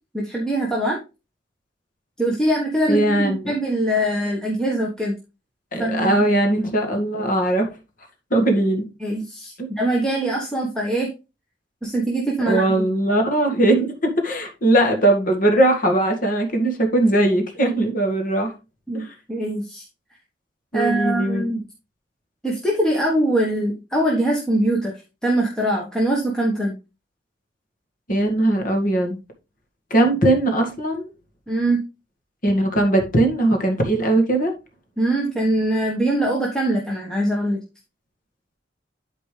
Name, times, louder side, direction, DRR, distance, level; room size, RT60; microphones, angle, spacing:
voice 1, 0.1-1.0 2.2-5.2 5.8-6.1 9.0-11.1 11.8-12.8 18.9-19.8 20.7-21.6 22.4-24.9 25.2-26.7 31.5-31.8 35.0-37.6, right 1 dB, 5° left, 1.3 m, -22 dB
voice 2, 2.9-3.5 5.7-7.7 8.3-8.8 9.6-9.7 12.5-18.5 18.9-19.1 20.7-21.5 28.1-29.2 29.9-31.1 32.4-34.5, right 1 dB, 45° left, 1.9 m, -20 dB
12.0 x 4.4 x 3.3 m
head